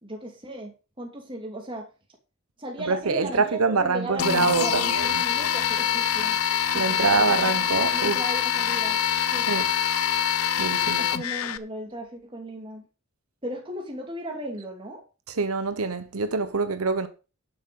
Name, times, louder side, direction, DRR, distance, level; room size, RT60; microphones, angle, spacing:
voice 1, 0.0-1.9 2.6-6.4 6.7-7.5 7.9-9.0 9.3-9.5 11.0-12.8 13.4-15.0, right 1 dB, 25° right, 2.9 m, -36 dB
voice 2, 2.9-5.2 6.7-8.2 9.4-9.7 10.6-11.1 15.3-17.1, right 4 dB, 80° right, 0.9 m, -25 dB
sound 1, 4.2-11.6, left 9 dB, 80° left, 0.7 m, -25 dB
11.0 x 6.9 x 5.4 m
head